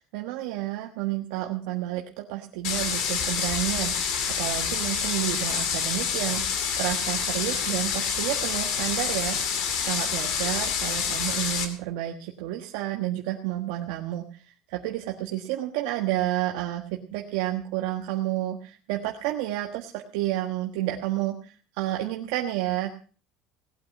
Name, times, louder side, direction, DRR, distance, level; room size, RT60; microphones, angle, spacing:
voice 1, 0.0-9.6 9.8-14.3 14.7-22.9, right 14 dB, 80° right, 2 dB, 1.4 m, -30 dB
sound 1, 2.6-11.7, left 7 dB, 60° left, 2.6 m, -27 dB
18.0 x 8.7 x 5.8 m, 0.40 s
cardioid pair, 145°, 0 cm